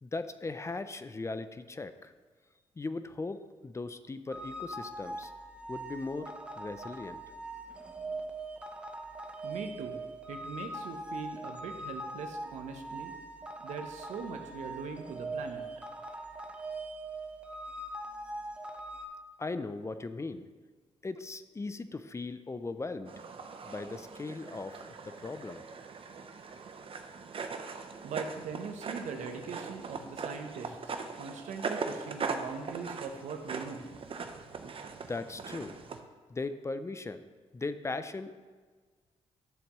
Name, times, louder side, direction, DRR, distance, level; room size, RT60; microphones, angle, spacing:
voice 1, 0.0-2.1 2.8-5.3 5.7-7.2 19.4-20.5 21.0-23.1 23.6-25.6 35.1-35.8 36.3-37.2 37.5-38.3, left 3 dB, 25° left, 11 dB, 0.5 m, -38 dB
sound 1, 4.3-19.1, right 2 dB, 10° right, 0.9 m, -42 dB
voice 2, 9.4-10.0 10.3-13.1 13.6-15.6 28.0-30.8 31.1-33.8, right 5 dB, 90° right, 5 dB, 0.9 m, -41 dB
sound 2, 23.1-36.0, right 5 dB, 50° right, 0.8 m, -40 dB
11.5 x 7.0 x 3.1 m, 1.4 s
cardioid pair, 85°, 12 cm